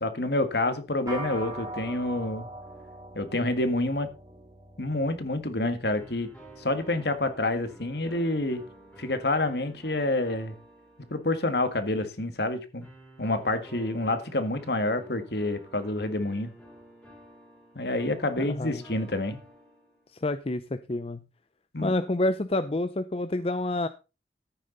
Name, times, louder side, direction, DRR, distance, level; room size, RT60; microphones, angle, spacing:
voice 1, 0.0-2.5 3.2-4.1 4.8-6.3 6.6-8.6 9.0-10.5 11.1-12.9 13.2-16.5 17.8-19.4 21.7-21.9, left 2 dB, 60° left, 10 dB, 1.9 m, -28 dB
sound 1, 1.1-10.6, right 1 dB, 20° right, 3.5 m, -44 dB
sound 2, 6.0-11.8 12.8-20.2, right 2 dB, 5° left, 4.0 m, -51 dB
voice 2, 18.4-18.8 20.2-21.2 21.8-23.9, left 2 dB, 30° left, 11 dB, 0.6 m, -28 dB
14.0 x 9.1 x 4.0 m, 0.30 s
head